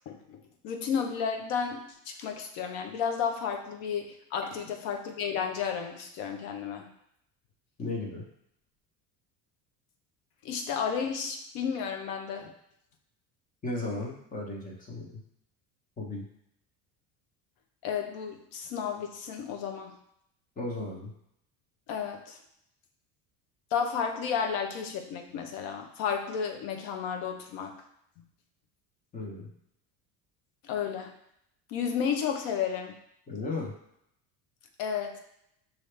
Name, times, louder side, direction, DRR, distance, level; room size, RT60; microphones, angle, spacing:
voice 1, 0.1-0.4 0.6-6.9 10.4-12.5 17.8-20.0 21.9-22.4 23.7-27.7 30.6-31.1 31.7-32.9 34.8-35.2, left 7 dB, 75° left, 4 dB, 0.9 m, -32 dB
voice 2, 7.8-8.3 13.6-15.2 16.0-16.3 20.6-21.1 29.1-29.5 33.3-33.7, left 2 dB, 20° left, -1 dB, 1.0 m, -35 dB
5.6 x 2.8 x 3.3 m, 0.75 s
cardioid pair, 135°, 36 cm